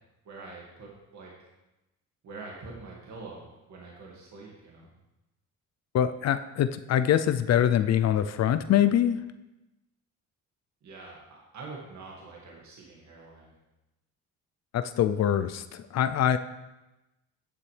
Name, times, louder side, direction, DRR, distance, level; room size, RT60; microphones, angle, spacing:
voice 1, 0.2-1.3 2.2-4.9 10.8-13.5, right 3 dB, 60° right, -3 dB, 2.1 m, -45 dB
voice 2, 5.9-9.2 14.7-16.4, left 10 dB, 50° left, 12 dB, 0.5 m, -24 dB
11.5 x 7.4 x 3.3 m, 1.0 s
cardioid pair, 85°, 33 cm